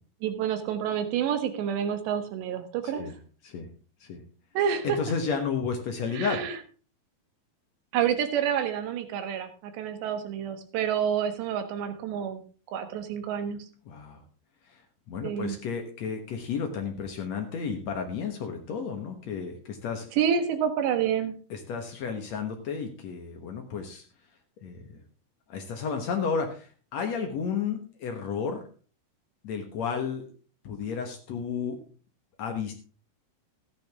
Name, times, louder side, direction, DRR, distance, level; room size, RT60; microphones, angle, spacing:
voice 1, 0.2-3.1 4.6-5.0 6.1-6.5 7.9-12.4 12.7-13.7 15.2-15.6 20.1-21.3, right 8 dB, 85° right, 8 dB, 3.5 m, -28 dB
voice 2, 2.8-3.1 3.4-3.7 4.0-4.2 4.8-6.4 13.8-14.2 14.6-14.8 15.1-20.1 21.5-24.0 24.6-25.0 25.5-28.6 29.4-30.3 30.6-31.8 32.4-32.7, left 6 dB, 65° left, 4 dB, 1.7 m, -32 dB
14.0 x 10.0 x 3.5 m, 0.38 s
omnidirectional pair, 4.9 m